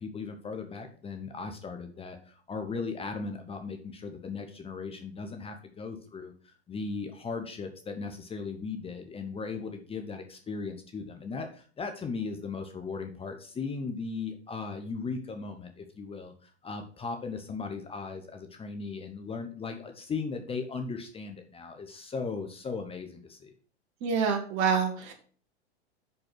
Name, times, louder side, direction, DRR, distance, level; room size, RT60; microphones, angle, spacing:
voice 1, 0.0-23.5, left 4 dB, 15° left, 6 dB, 1.0 m, -37 dB
voice 2, 24.0-25.1, right 6 dB, 50° right, 2 dB, 2.0 m, -27 dB
6.3 x 5.6 x 5.7 m, 0.43 s
hypercardioid pair, 110°, 32 cm